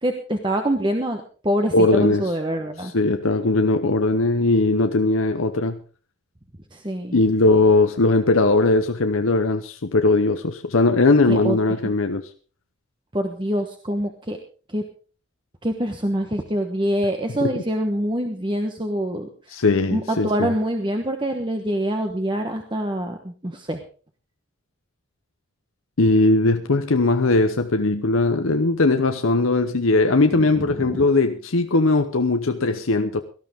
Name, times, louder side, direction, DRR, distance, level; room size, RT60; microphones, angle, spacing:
voice 1, 0.0-2.9 6.7-7.2 11.3-11.6 13.1-14.4 14.7-14.8 15.6-19.3 19.9-23.8 30.6-31.0, right 1 dB, 25° right, 1.1 m, -25 dB
voice 2, 1.7-2.3 2.8-5.8 7.1-12.2 17.4-17.5 19.5-20.5 26.0-33.2, left 2 dB, 80° left, 0.9 m, -19 dB
18.0 x 13.0 x 3.6 m
head